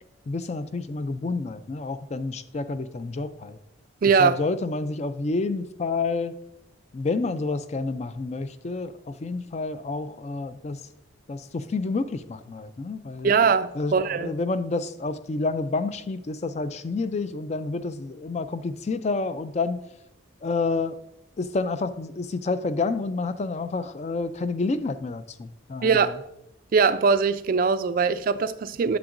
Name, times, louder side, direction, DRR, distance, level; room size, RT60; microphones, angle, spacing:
voice 1, 0.3-3.6 4.2-6.4 6.9-10.8 11.3-13.3 13.7-19.8 20.4-21.0 21.4-26.1, left 3 dB, 35° left, 0.3 m, -29 dB
voice 2, 4.0-4.4 13.2-14.3 25.8-26.2 26.7-29.0, right 5 dB, 45° right, 0.3 m, -21 dB
8.8 x 7.1 x 2.5 m
head